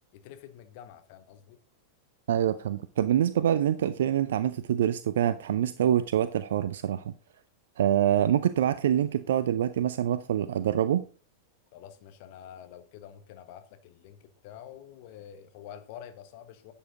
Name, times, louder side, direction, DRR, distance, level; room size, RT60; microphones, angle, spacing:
voice 1, 0.1-1.6 11.7-16.7, left 10 dB, 45° left, 1.3 m, -47 dB
voice 2, 2.3-7.1 7.8-11.0, right 10 dB, 60° right, 0.4 m, -25 dB
11.0 x 7.2 x 3.9 m
figure-of-eight pair, 90°, 0 cm